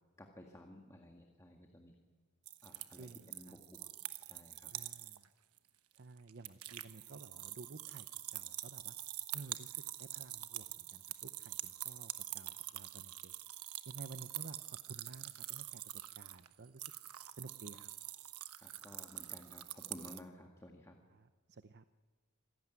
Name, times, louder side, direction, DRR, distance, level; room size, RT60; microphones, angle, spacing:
voice 1, 0.2-1.9 2.6-3.9 4.3-4.7 18.5-21.0, left 1 dB, 15° left, 2 dB, 2.0 m, -55 dB
sound 1, 2.5-5.2 5.6-5.7 6.0-20.2, right 14 dB, 85° right, 1.2 m, -45 dB
voice 2, 2.9-3.6 4.7-5.3 5.9-8.1 8.3-9.0 9.3-13.3 13.9-16.9 17.4-17.9 21.1-21.8, right 3 dB, 50° right, 11 dB, 0.7 m, -53 dB
27.0 x 17.5 x 9.5 m, 1.4 s
head